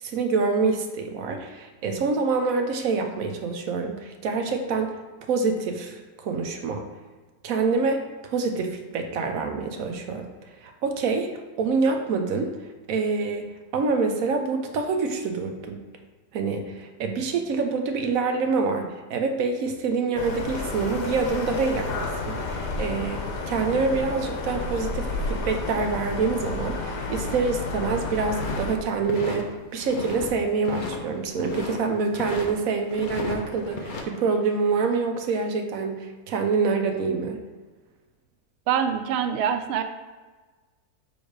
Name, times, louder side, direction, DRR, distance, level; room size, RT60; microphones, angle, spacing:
voice 1, 0.0-5.0 5.3-6.8 7.4-10.3 10.6-11.3 11.6-12.5 12.9-15.8 16.3-37.4, right 4 dB, 65° right, 5 dB, 1.1 m, -26 dB
sound 1, 20.2-28.8, left 2 dB, 90° left, 1.5 m, -31 dB
sound 2, 28.4-29.4 29.8-30.3 30.6-31.8 32.1-32.5 32.9-34.0, left 2 dB, 40° left, 0.7 m, -34 dB
voice 2, 38.7-39.8, right 8 dB, 85° right, 8 dB, 0.5 m, -24 dB
7.1 x 3.4 x 4.8 m, 1.3 s
omnidirectional pair, 1.7 m